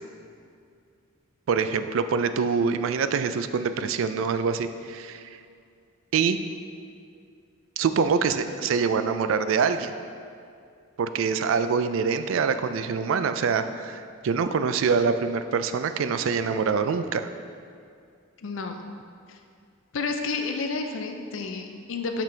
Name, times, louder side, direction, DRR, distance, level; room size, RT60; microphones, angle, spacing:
voice 1, 1.5-5.3 6.1-6.4 7.8-9.9 11.0-17.3, right 5 dB, 70° right, 10 dB, 0.3 m, -25 dB
voice 2, 18.4-18.8 19.3-19.4 19.9-22.2, left 4 dB, 65° left, 5 dB, 0.5 m, -30 dB
6.8 x 5.8 x 3.3 m, 2.3 s
head